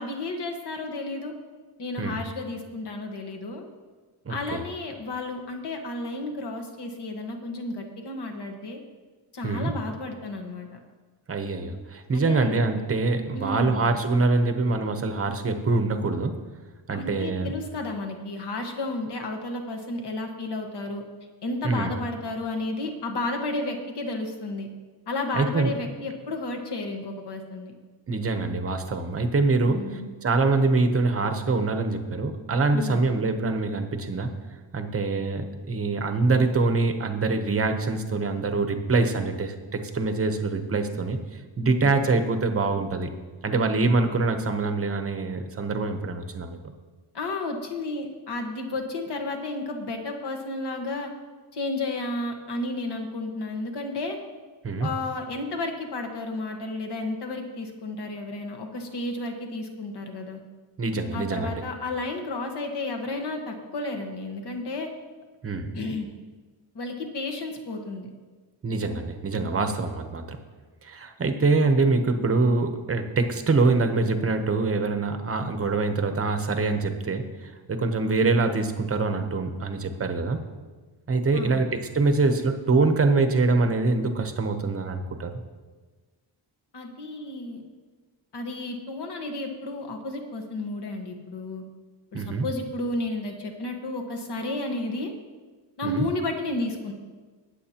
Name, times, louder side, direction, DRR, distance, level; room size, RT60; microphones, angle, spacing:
voice 1, 0.0-1.3 1.8-3.6 4.3-8.8 9.3-10.8 12.1-12.6 13.3-13.9 16.9-21.0 21.4-24.7 25.1-27.7 29.6-30.1 32.7-33.1 41.6-41.9 47.1-51.1 51.5-54.2 54.8-60.4 61.1-64.9 65.7-66.1 66.7-68.1 81.3-81.7 86.7-87.6 88.3-91.6 92.1-95.1 95.8-96.9, left 2 dB, 55° left, 4 dB, 1.4 m, -32 dB
voice 2, 4.3-4.6 9.4-9.7 11.3-16.4 16.9-17.5 21.6-21.9 25.3-25.7 28.1-34.3 34.7-41.2 41.6-43.1 43.4-46.6 54.6-54.9 60.8-61.6 65.4-65.7 68.6-70.4 70.8-80.4 81.1-85.3 92.1-92.5 95.8-96.1, right 3 dB, 30° right, 7 dB, 0.8 m, -24 dB
21.5 x 7.7 x 2.9 m, 1.4 s
wide cardioid pair, 175°, 48 cm